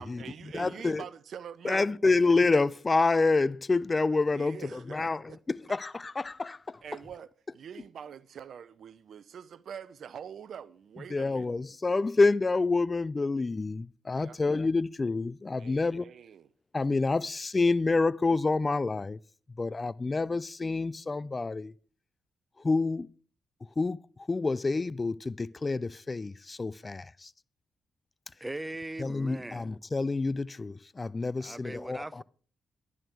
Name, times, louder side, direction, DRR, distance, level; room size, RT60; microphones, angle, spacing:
voice 1, 0.0-2.2 4.3-5.4 6.8-11.5 14.1-14.4 15.6-16.5, right 8 dB, 65° right, 0.8 m, -45 dB
voice 2, 0.5-1.0 1.6-6.8 11.1-16.0 16.7-19.2 19.6-21.7 22.6-23.1 23.8-27.3 29.0-32.2, left 3 dB, 30° left, 0.5 m, -28 dB
voice 3, 28.4-29.7 31.4-32.2, right 2 dB, 15° right, 0.6 m, -39 dB
11.0 x 11.0 x 4.6 m
supercardioid pair, 60°, 0 cm